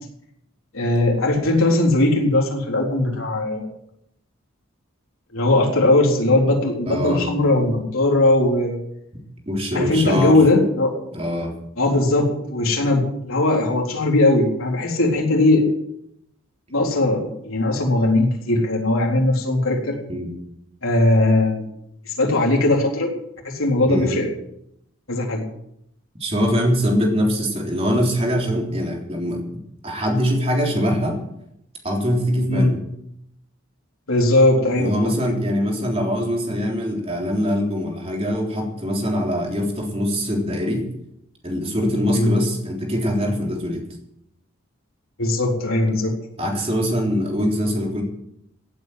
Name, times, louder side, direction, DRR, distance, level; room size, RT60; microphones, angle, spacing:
voice 1, 0.7-3.7 5.3-8.8 9.7-10.9 11.8-15.7 16.7-20.0 20.8-21.6 22.1-23.1 23.4-24.3 25.1-25.4 32.5-32.8 34.1-35.1 42.1-42.4 45.2-46.1, left 2 dB, 75° left, 0 dB, 3.9 m, -19 dB
voice 2, 6.9-7.2 9.5-10.4 11.1-11.5 20.1-20.3 23.9-24.1 26.2-29.4 29.8-31.2 31.8-32.7 34.8-40.9 41.4-43.8 46.4-48.0, equal, 25° right, 0 dB, 3.6 m, -23 dB
16.5 x 8.5 x 7.8 m, 0.77 s
head